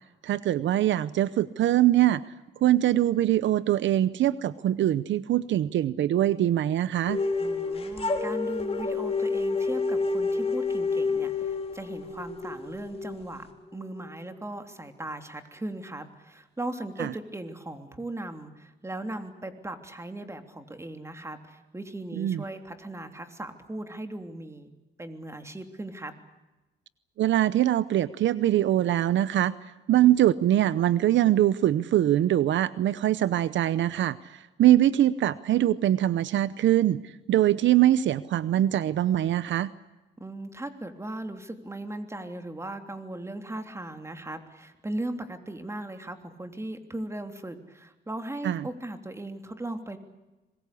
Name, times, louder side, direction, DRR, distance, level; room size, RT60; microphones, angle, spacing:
voice 1, 0.2-2.2 2.6-7.2 17.0-17.1 22.2-22.4 27.2-29.5 29.9-39.7 48.4-48.6, right 12 dB, 70° right, 16 dB, 0.8 m, -23 dB
sound 1, 7.1-14.0, left 3 dB, 30° left, 3.8 m, -29 dB
voice 2, 7.4-13.5 13.7-24.7 25.0-26.1 40.2-50.0, right 1 dB, 15° right, 6 dB, 3.2 m, -38 dB
25.5 x 21.5 x 8.5 m, 1.1 s
cardioid pair, 90°, 20 cm